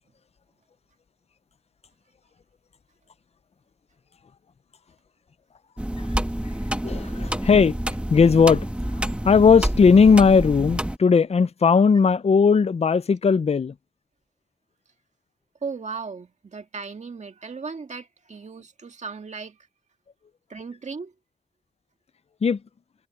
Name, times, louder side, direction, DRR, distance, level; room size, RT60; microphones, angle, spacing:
sound 1, 5.8-11.0, right 1 dB, 10° right, 1.6 m, -28 dB
voice 1, 6.8-7.8 8.1-8.7 9.2-13.7 22.4-22.6, left 5 dB, 60° left, 0.5 m, -17 dB
voice 2, 15.6-19.6 20.5-21.1, right 5 dB, 75° right, 1.9 m, -36 dB
cardioid pair, 55°, 12 cm